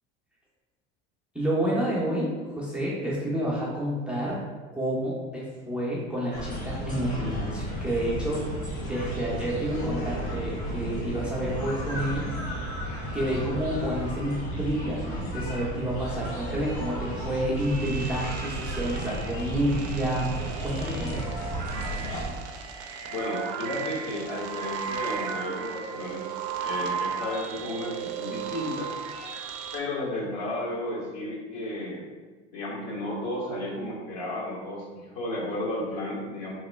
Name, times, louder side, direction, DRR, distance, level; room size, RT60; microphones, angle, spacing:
voice 1, 1.3-4.4 4.7-8.5 8.8-12.3 13.1-20.4 20.6-21.2, right 1 dB, 5° right, -6 dB, 0.7 m, -29 dB
sound 1, 6.3-22.3, right 1 dB, 85° left, 1.2 m, -33 dB
sound 2, 17.6-29.8, right 6 dB, 50° right, 0.5 m, -36 dB
voice 2, 23.1-28.9 29.7-32.1 32.5-36.5, left 1 dB, 55° left, -4 dB, 1.1 m, -33 dB
3.0 x 2.1 x 3.2 m, 1.4 s
hypercardioid pair, 90°, 33 cm